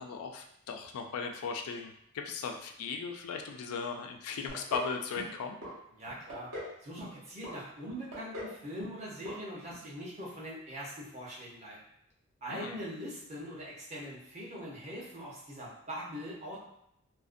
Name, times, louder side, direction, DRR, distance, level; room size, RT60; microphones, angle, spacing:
voice 1, 0.0-5.6 12.5-12.8, left 5 dB, 85° left, 4 dB, 0.3 m, -37 dB
sound 1, 4.5-4.9 5.2-5.7 6.1-6.7 7.0-7.6 7.9-8.5 8.8-9.0 9.3-9.4 9.7-9.8, left 1 dB, 65° right, 0.8 m, -41 dB
voice 2, 6.0-6.5 6.8-11.8 12.4-16.6, equal, 30° right, -6 dB, 0.7 m, -42 dB
2.5 x 2.1 x 2.5 m, 0.75 s
head